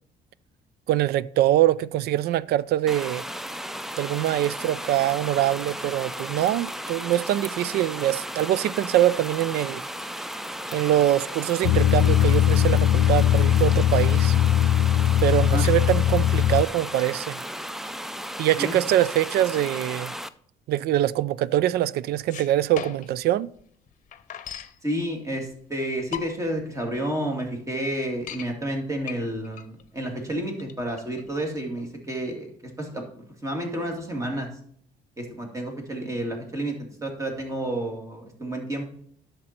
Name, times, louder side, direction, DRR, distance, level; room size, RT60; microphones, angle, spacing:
voice 1, 0.9-3.2 4.0-9.8 10.7-14.4 15.2-17.4 18.4-20.1 20.7-23.5, right 13 dB, 70° right, 0.4 m, -23 dB
sound 1, 2.9-20.3, equal, ahead, 0.4 m, -35 dB
sound 2, 11.6-16.6, left 11 dB, 80° left, 0.5 m, -20 dB
sound 3, 22.1-23.2 23.6-23.7 23.9-24.8 25.5-25.6 26.0-26.6 27.1-27.2 27.4-27.5 27.9-28.5 29.0-31.9, left 9 dB, 50° left, 0.8 m, -38 dB
voice 2, 24.8-34.5 35.2-36.7 37.0-38.9, right 1 dB, 20° right, 2.4 m, -30 dB
11.0 x 6.7 x 4.4 m
cardioid pair, 110°, 17 cm